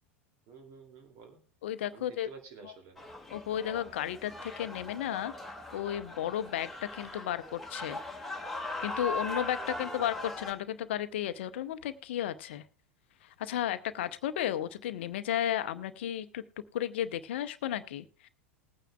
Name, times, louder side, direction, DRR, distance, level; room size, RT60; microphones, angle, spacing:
voice 1, 0.5-1.4 1.9-3.0 9.5-10.1, right 5 dB, 45° right, 4 dB, 2.6 m, -51 dB
voice 2, 1.6-2.3 3.3-8.0 8.8-12.6 13.2-16.4 16.7-18.3, left 11 dB, 60° left, 13 dB, 0.7 m, -34 dB
sound 1, 3.0-10.5, left 2 dB, ahead, 1.9 m, -40 dB
20.0 x 9.1 x 2.3 m, 0.38 s
figure-of-eight pair, 85°, 7 cm